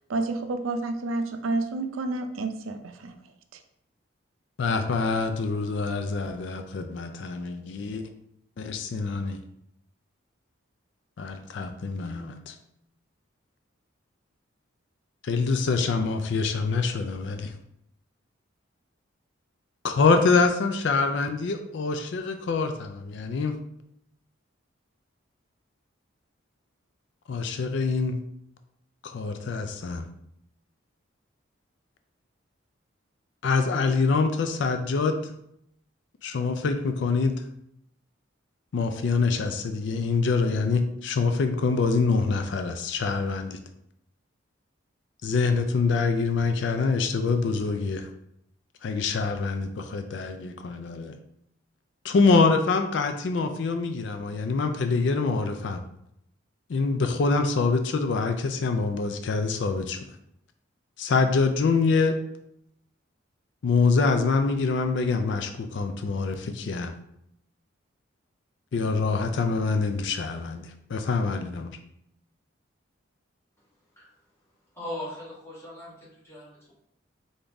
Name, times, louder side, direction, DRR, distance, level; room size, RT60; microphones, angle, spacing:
voice 1, 0.1-3.2, right 2 dB, 90° right, 7 dB, 0.5 m, -29 dB
voice 2, 4.6-8.0 8.6-9.4 11.2-12.5 15.2-17.5 19.8-23.6 27.3-28.2 29.0-30.1 33.4-35.3 36.2-37.3 38.7-43.6 45.2-48.1 48.8-51.2 52.0-55.8 56.7-60.0 61.0-62.2 63.6-66.9 68.7-71.8, left 4 dB, 60° left, 7 dB, 0.4 m, -25 dB
voice 3, 74.7-76.7, left 1 dB, 15° left, -8 dB, 1.6 m, -39 dB
3.8 x 3.8 x 3.4 m, 0.76 s
head